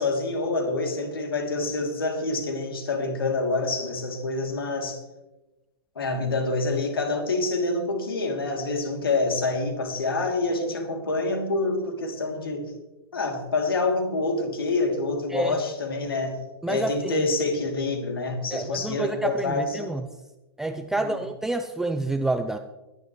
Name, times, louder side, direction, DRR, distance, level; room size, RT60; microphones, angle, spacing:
voice 1, 0.0-5.0 5.9-12.7 13.1-16.4 16.7-19.9 20.9-21.2, left 3 dB, 65° left, 3 dB, 2.8 m, -27 dB
voice 2, 16.6-17.3 18.5-20.0 20.6-22.6, right 2 dB, 5° right, 7 dB, 0.5 m, -28 dB
22.0 x 11.0 x 3.1 m, 1.0 s
figure-of-eight pair, 105°, 13 cm